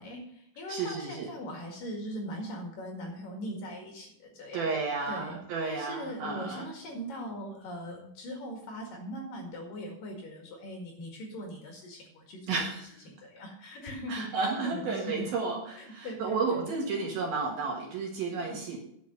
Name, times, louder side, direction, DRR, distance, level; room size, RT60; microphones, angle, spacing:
voice 1, 0.0-4.7 5.1-5.4 5.6-12.6 13.2-15.3 15.8-16.7 17.0-17.1 18.4-18.6, equal, 55° left, 1 dB, 3.0 m, -40 dB
voice 2, 0.7-1.3 4.5-6.7 12.5-12.9 14.1-18.8, right 4 dB, 65° right, 0 dB, 2.9 m, -32 dB
10.5 x 7.1 x 6.5 m, 0.74 s
omnidirectional pair, 5.5 m